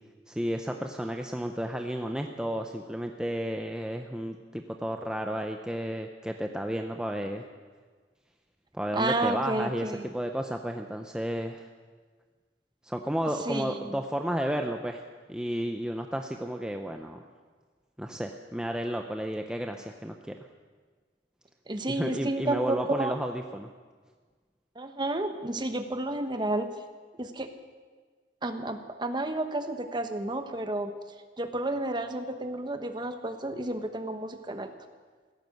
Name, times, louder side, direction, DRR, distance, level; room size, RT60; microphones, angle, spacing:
voice 1, 0.3-7.4 8.7-11.7 12.8-15.0 15.3-17.2 18.0-20.4 22.0-23.7, equal, 5° right, 4 dB, 0.6 m, -32 dB
voice 2, 8.9-10.2 13.4-14.0 21.7-23.2 24.8-26.7 27.2-27.5 28.4-30.9 31.4-34.7, right 2 dB, 25° right, 8 dB, 1.0 m, -31 dB
16.0 x 14.0 x 6.5 m, 1.5 s
head